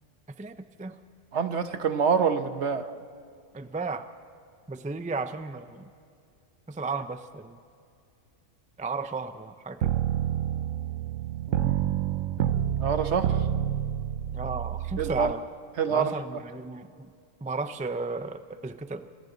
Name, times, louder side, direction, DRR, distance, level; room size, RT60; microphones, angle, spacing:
voice 1, 0.4-1.0 3.5-4.1 4.7-5.9 6.7-7.6 8.8-10.0 14.3-15.4 15.9-17.1 17.4-19.1, right 3 dB, 10° right, 10 dB, 0.4 m, -34 dB
voice 2, 1.3-2.9 11.5-11.8 12.8-13.3 15.0-15.3 15.8-16.1, right 6 dB, 65° right, 9 dB, 1.3 m, -26 dB
sound 1, 9.8-15.3, right 10 dB, 90° right, 1.0 m, -28 dB
28.0 x 25.0 x 4.0 m, 2.3 s
omnidirectional pair, 1.3 m